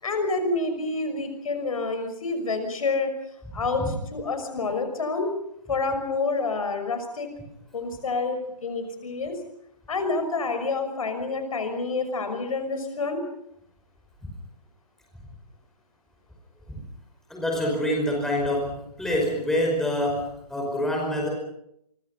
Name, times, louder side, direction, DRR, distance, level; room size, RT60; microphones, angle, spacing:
voice 1, 0.0-3.1 3.5-5.3 5.7-7.3 7.7-9.4 9.9-13.2, left 3 dB, 55° left, 7 dB, 6.0 m, -28 dB
voice 2, 17.3-21.3, left 1 dB, ahead, -1 dB, 5.2 m, -26 dB
29.0 x 25.0 x 5.6 m, 0.76 s
figure-of-eight pair, 140°, 21 cm